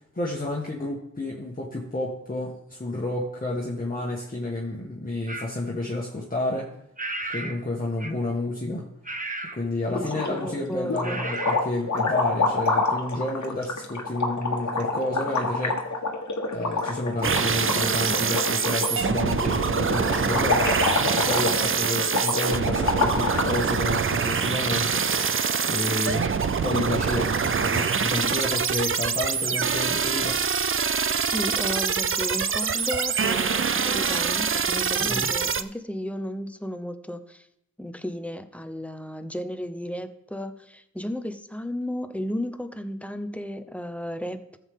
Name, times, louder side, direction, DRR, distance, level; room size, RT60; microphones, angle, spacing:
voice 1, 0.1-6.7 7.3-8.9 9.5-15.8 16.5-20.7 21.1-25.1 25.6-30.4 35.0-35.3, left 2 dB, 30° left, -3 dB, 1.6 m, -30 dB
sound 1, 5.3-5.5 7.0-7.6 8.0-8.3 9.1-9.6 11.0-11.6, right 2 dB, 25° right, 1.2 m, -33 dB
sound 2, 9.9-10.5 10.9-23.6, left 3 dB, 70° left, 1.4 m, -27 dB
voice 2, 9.9-11.2 31.2-37.5 37.8-44.6, equal, 5° left, 9 dB, 0.8 m, -34 dB
sound 3, 17.2-35.6, right 6 dB, 45° right, 0.5 m, -25 dB
13.5 x 7.5 x 3.7 m, 0.79 s
wide cardioid pair, 55°, 30 cm